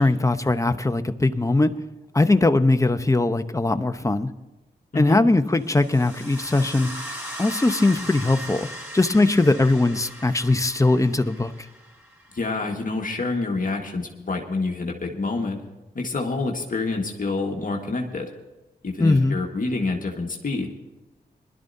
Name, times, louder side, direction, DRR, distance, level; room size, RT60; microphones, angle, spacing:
voice 1, 0.0-1.7 2.1-4.3 4.9-6.9 7.4-8.7 8.9-11.5 19.0-19.4, left 2 dB, 20° left, 9 dB, 0.9 m, -20 dB
voice 2, 4.9-5.2 12.3-15.6 16.0-18.3 18.8-20.7, left 3 dB, 50° left, 1 dB, 1.7 m, -27 dB
sound 1, 5.6-12.5, equal, 10° right, 4.6 m, -38 dB
21.0 x 12.0 x 2.7 m, 1.1 s
cardioid pair, 55°, 17 cm